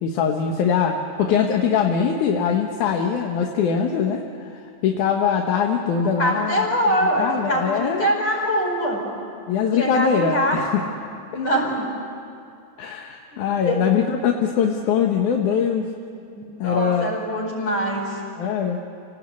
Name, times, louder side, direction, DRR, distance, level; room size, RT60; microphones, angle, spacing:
voice 1, 0.0-6.7 7.2-8.1 9.5-10.8 12.8-15.9 16.6-17.1 18.4-18.8, left 7 dB, 85° left, 2 dB, 2.6 m, -22 dB
voice 2, 6.2-9.1 9.8-10.6 11.3-11.9 13.3-13.8 16.3-18.2, equal, 60° left, -1 dB, 5.9 m, -23 dB
29.0 x 18.0 x 8.4 m, 2.5 s
omnidirectional pair, 3.4 m